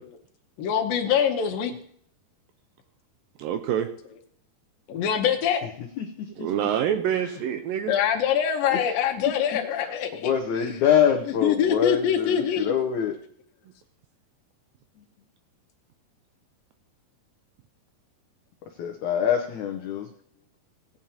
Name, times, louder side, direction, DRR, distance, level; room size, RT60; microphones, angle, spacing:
voice 1, 0.6-1.7 4.9-5.7 7.9-10.3 11.4-12.7, left 8 dB, 75° left, 4 dB, 2.5 m, -24 dB
voice 2, 3.4-3.9 6.4-7.9, right 9 dB, 80° right, 7 dB, 2.1 m, -26 dB
voice 3, 5.6-6.5 6.9-7.3 8.7-8.8 9.7-9.9 10.2-13.2 18.8-20.1, left 9 dB, 90° left, 4 dB, 1.6 m, -25 dB
18.0 x 8.9 x 2.9 m, 0.63 s
omnidirectional pair, 4.5 m